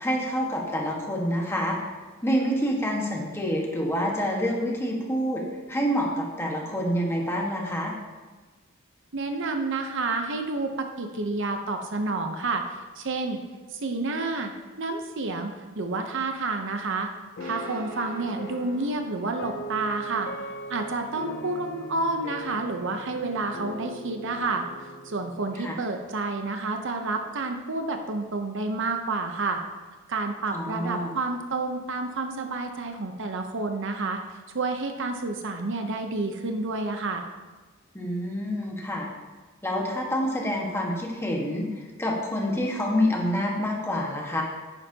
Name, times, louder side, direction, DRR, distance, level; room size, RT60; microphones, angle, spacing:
voice 1, 0.0-1.8 2.2-7.9 25.6-25.8 30.5-31.1 37.9-39.1 39.6-44.4, equal, 10° left, -1 dB, 1.5 m, -27 dB
voice 2, 9.1-12.6 13.0-13.4 13.7-14.5 14.8-17.1 17.4-20.3 20.7-24.6 25.0-29.6 30.1-37.3, right 3 dB, 60° right, 5 dB, 0.8 m, -29 dB
sound 1, 17.4-26.5, equal, 50° left, 0.6 m, -40 dB
Guitar, 17.4-25.4, right 1 dB, 85° right, 2.6 m, -49 dB
10.5 x 9.9 x 2.9 m, 1.3 s
head